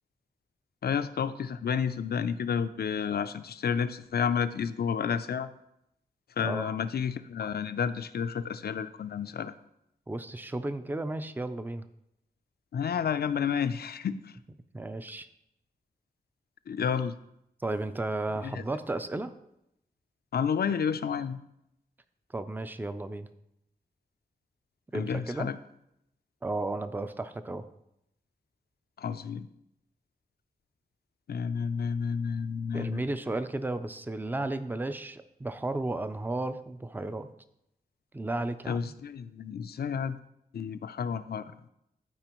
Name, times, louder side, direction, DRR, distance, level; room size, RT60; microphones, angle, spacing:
voice 1, 0.8-5.5 6.4-9.5 12.7-14.2 16.7-17.1 18.4-18.6 20.3-21.4 24.9-25.6 29.0-29.5 31.3-33.0 38.7-40.2 40.5-41.5, left 7 dB, 80° left, 13 dB, 0.4 m, -30 dB
voice 2, 6.4-6.8 10.1-11.9 14.7-15.3 17.6-19.3 22.3-23.3 24.9-25.5 26.4-27.6 32.7-37.3 38.1-38.9, right 2 dB, 10° right, 11 dB, 0.4 m, -33 dB
12.0 x 4.9 x 3.0 m, 0.81 s
wide cardioid pair, 105°, 16 cm